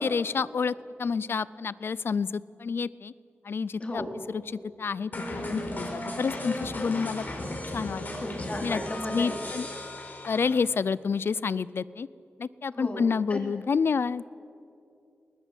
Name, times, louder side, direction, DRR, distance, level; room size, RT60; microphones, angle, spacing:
voice 1, 0.0-3.1 3.4-8.2 8.6-8.8 9.1-9.7 10.3-12.1 12.4-14.2, left 5 dB, 65° left, 19 dB, 0.5 m, -29 dB
sound 1, 5.1-10.8, left 1 dB, 50° left, 4.4 m, -36 dB
voice 2, 8.1-9.5 12.7-13.0 13.3-13.4, left 1 dB, 30° left, 2 dB, 3.9 m, -34 dB
20.5 x 20.0 x 8.3 m, 2.5 s
wide cardioid pair, 80°, 4 cm